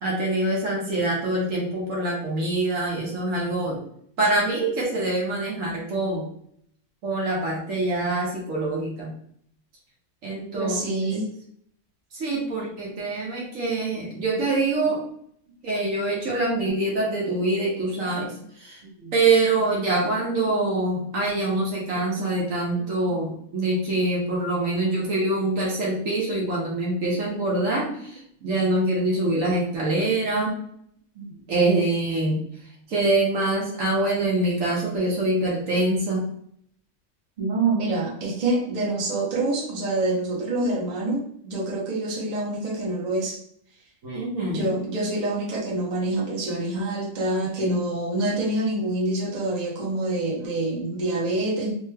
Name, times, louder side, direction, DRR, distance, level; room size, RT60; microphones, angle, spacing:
voice 1, 0.0-3.8 4.2-6.3 7.0-9.1 10.2-10.8 11.1-11.3 12.1-15.0 15.6-18.8 19.1-30.6 31.5-32.4 32.9-36.2 44.0-44.7, right 2 dB, 65° right, -4 dB, 1.2 m, -25 dB
voice 2, 10.5-11.3 12.5-12.7 18.1-18.2 18.8-19.1 22.1-22.2 22.8-23.2 31.1-31.3 37.4-43.4 44.5-51.7, right 2 dB, 35° right, -5 dB, 0.9 m, -26 dB
3.3 x 2.1 x 3.2 m, 0.68 s
omnidirectional pair, 1.5 m